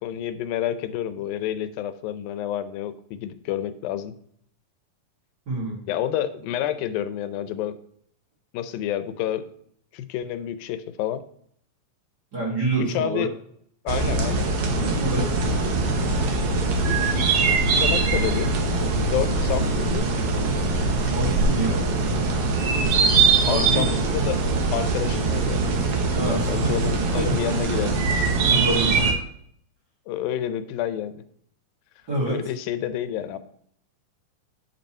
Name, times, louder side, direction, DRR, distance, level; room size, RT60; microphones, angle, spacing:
voice 1, 0.0-4.2 5.9-7.8 8.5-9.5 9.9-11.2 12.9-13.3 13.9-14.5 16.9-18.5 19.0-20.1 23.4-24.4 24.7-25.6 26.4-28.0 30.1-31.2 32.3-33.4, left 11 dB, 85° left, 12 dB, 2.4 m, -29 dB
voice 2, 5.5-5.8 12.3-13.3 15.0-15.4 21.0-21.8 23.4-24.0 26.1-26.7 27.2-27.4 28.4-29.2 32.1-32.4, right 2 dB, 35° right, -4 dB, 2.1 m, -27 dB
sound 1, 13.9-29.1, right 3 dB, 70° right, 1.4 m, -22 dB
9.4 x 5.4 x 4.3 m, 0.66 s
omnidirectional pair, 4.0 m